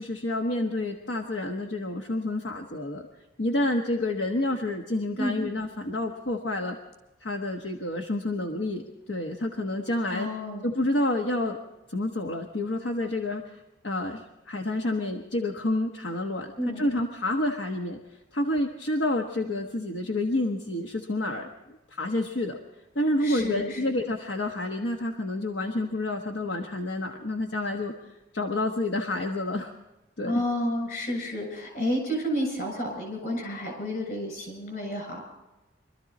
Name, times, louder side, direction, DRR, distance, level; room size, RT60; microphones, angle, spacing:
voice 1, 0.0-3.1 3.4-6.8 7.2-10.3 10.6-11.6 11.9-22.6 22.9-29.7 30.2-30.4, left 1 dB, 70° left, 2 dB, 1.3 m, -29 dB
voice 2, 10.1-10.7 16.6-16.8 23.2-23.8 30.2-35.2, left 1 dB, 45° left, 2 dB, 7.0 m, -30 dB
24.5 x 13.5 x 4.2 m, 1.0 s
head